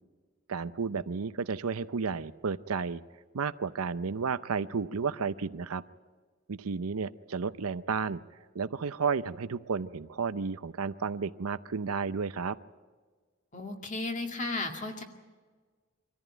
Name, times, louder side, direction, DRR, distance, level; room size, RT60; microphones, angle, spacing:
voice 1, 0.5-3.0 3.3-5.8 6.5-8.2 8.5-12.6, right 5 dB, 80° right, 14 dB, 0.6 m, -32 dB
voice 2, 13.5-15.0, left 2 dB, 35° left, 4 dB, 2.2 m, -34 dB
24.5 x 14.5 x 9.1 m, 1.5 s
head